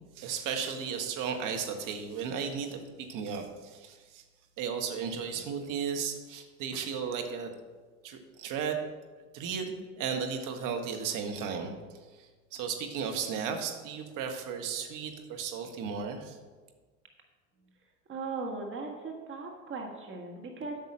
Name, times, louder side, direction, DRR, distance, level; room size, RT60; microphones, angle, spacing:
voice 1, 0.2-4.2 4.6-7.5 8.0-8.8 9.3-11.7 12.1-16.4, right 6 dB, 50° right, 4 dB, 1.7 m, -35 dB
voice 2, 18.1-20.8, right 4 dB, 30° right, 2 dB, 1.7 m, -38 dB
8.6 x 6.0 x 7.6 m, 1.4 s
hypercardioid pair, 80°, 39 cm